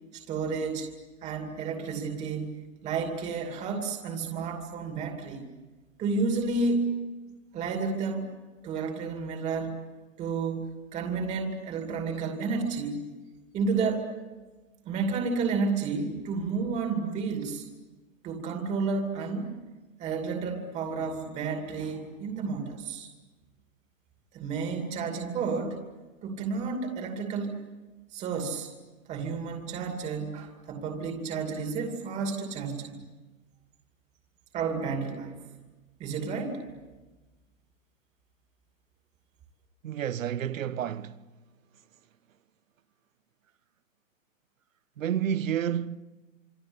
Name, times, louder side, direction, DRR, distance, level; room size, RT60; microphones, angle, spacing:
voice 1, 0.1-0.9 1.2-5.4 6.0-6.9 7.5-8.3 8.6-9.8 10.2-10.6 10.9-13.0 13.5-14.1 14.9-17.6 18.2-19.5 20.0-23.1 24.3-25.8 26.2-27.6 28.1-28.7 29.1-33.0 34.5-35.4 36.0-36.6, right 4 dB, 15° right, 2.6 m, -31 dB
voice 2, 39.8-41.2 45.0-46.0, right 9 dB, 70° right, 1.2 m, -30 dB
27.0 x 25.0 x 8.0 m
hypercardioid pair, 165°, 41 cm